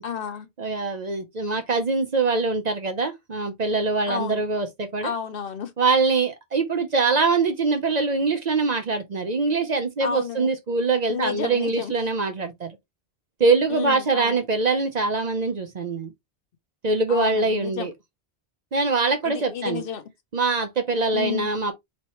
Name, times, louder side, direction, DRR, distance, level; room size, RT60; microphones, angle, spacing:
voice 1, 0.0-0.5 4.1-4.4 5.0-5.7 10.0-10.5 11.1-11.9 13.7-14.4 17.1-17.9 19.2-20.0 21.1-21.5, left 7 dB, 65° left, 0.8 m, -31 dB
voice 2, 0.6-5.1 5.8-12.7 13.4-16.1 16.8-17.9 18.7-19.8 20.3-21.7, right 3 dB, 50° right, 0.7 m, -23 dB
4.2 x 3.2 x 2.9 m
omnidirectional pair, 1.1 m